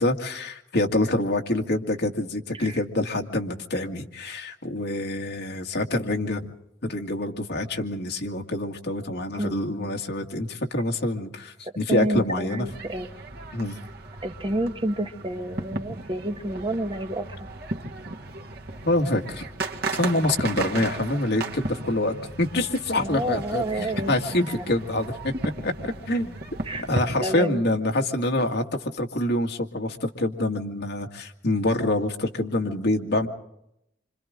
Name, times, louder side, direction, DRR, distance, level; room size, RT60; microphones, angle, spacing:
voice 1, 0.0-6.5 6.8-12.7 13.5-13.8 18.8-19.5 19.9-25.3 25.6-25.7 26.1-26.4 26.9-33.3, left 1 dB, 60° left, 3 dB, 2.2 m, -26 dB
voice 2, 9.4-9.9 11.9-13.1 14.2-17.4 22.9-24.1 24.6-24.7 26.6-26.9 27.2-27.6, right 1 dB, 30° right, 6 dB, 1.4 m, -29 dB
sound 1, 12.7-27.1, right 2 dB, 60° right, 2.0 m, -35 dB
27.5 x 26.0 x 3.8 m, 0.80 s
head